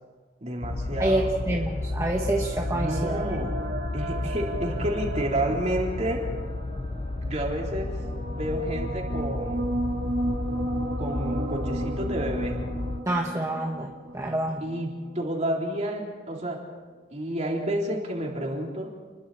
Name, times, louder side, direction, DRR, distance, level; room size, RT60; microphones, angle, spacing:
voice 1, 0.4-1.3 2.7-3.6 3.9-6.3 7.2-8.0 8.3-9.8 11.0-12.6 14.6-16.7 17.1-18.9, right 1 dB, 35° right, -1 dB, 4.0 m, -30 dB
sound 1, 0.6-13.0, left 2 dB, 30° left, 0.5 m, -32 dB
voice 2, 1.0-3.3 13.1-14.6, right 1 dB, 15° right, 0 dB, 1.3 m, -27 dB
sound 2, 1.7-15.3, right 2 dB, 55° right, 2.2 m, -35 dB
29.5 x 22.0 x 4.4 m, 1.4 s
head